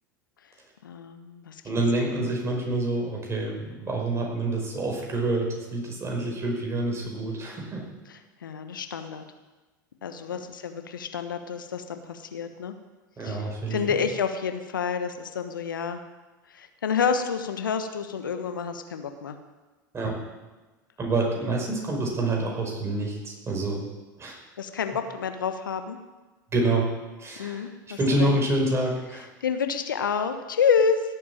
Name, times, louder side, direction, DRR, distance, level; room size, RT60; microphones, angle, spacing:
voice 1, 0.8-1.6 8.1-9.2 10.0-12.7 13.2-16.0 16.5-19.4 24.6-26.0 27.4-28.3 29.2-31.0, left 6 dB, 80° left, 8 dB, 1.2 m, -29 dB
voice 2, 1.6-7.8 13.2-13.8 19.9-20.2 21.0-23.9 24.2-24.4 26.5-26.9 27.2-29.3, right 2 dB, 25° right, 0 dB, 5.5 m, -27 dB
17.0 x 8.6 x 7.3 m, 1.2 s
hypercardioid pair, 85°, 11 cm